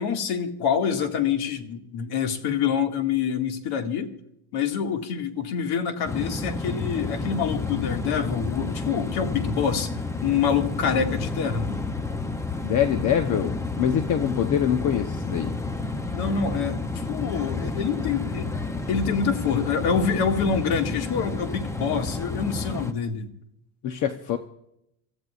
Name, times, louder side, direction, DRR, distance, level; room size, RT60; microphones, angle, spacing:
voice 1, 0.0-4.2 4.5-9.9 10.2-11.8 16.1-18.5 18.9-23.3, left 7 dB, 55° left, 5 dB, 2.2 m, -26 dB
sound 1, 6.1-22.9, left 3 dB, 5° left, 0.6 m, -30 dB
voice 2, 12.6-15.5 23.8-24.4, left 9 dB, 40° left, 8 dB, 0.9 m, -24 dB
27.5 x 14.0 x 2.5 m, 0.78 s
cardioid pair, 135°, 45 cm